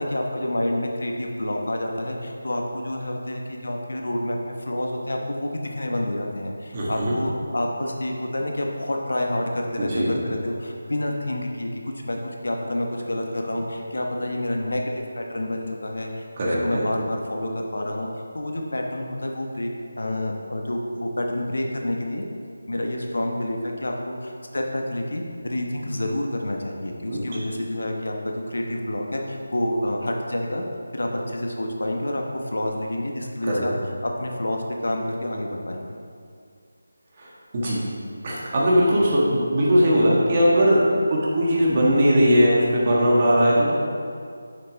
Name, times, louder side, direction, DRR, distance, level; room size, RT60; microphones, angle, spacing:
voice 1, 0.0-12.2 12.4-14.8 15.1-19.7 20.0-22.3 22.7-30.6 30.9-33.7 34.0-36.0, left 1 dB, 80° left, 1 dB, 1.1 m, -28 dB
voice 2, 6.7-7.2 9.8-10.2 16.4-16.8 27.1-27.4 33.5-33.6 37.2-37.3 37.5-37.8 38.2-43.7, equal, 30° right, -5 dB, 1.4 m, -19 dB
6.7 x 6.6 x 4.0 m, 2.2 s
figure-of-eight pair, 170°, 0 cm